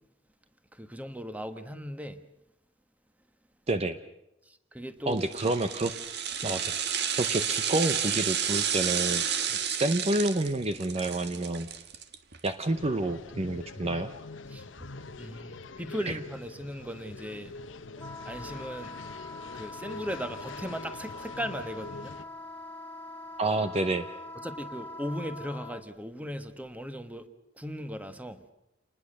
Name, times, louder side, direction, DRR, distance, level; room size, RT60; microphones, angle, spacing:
voice 1, 0.8-2.2 4.7-5.2 6.4-6.5 9.5-9.6 14.5-14.6 15.2-17.5 18.2-18.9 19.5-22.2 24.4-27.3 27.6-28.4, equal, 10° right, 1.4 m, -37 dB
voice 2, 3.7-4.0 5.1-5.9 6.4-6.7 7.1-9.2 9.7-11.7 12.4-14.1 16.1-16.2 23.4-24.1, right 2 dB, 35° right, 0.8 m, -28 dB
sound 1, 5.2-12.5 12.8-12.9, right 8 dB, 60° right, 1.5 m, -31 dB
sound 2, 12.7-22.2, left 3 dB, 75° left, 1.0 m, -44 dB
Wind instrument woodwind instrument, 18.0-25.8, left 2 dB, 10° left, 2.2 m, -43 dB
28.0 x 20.0 x 6.6 m
head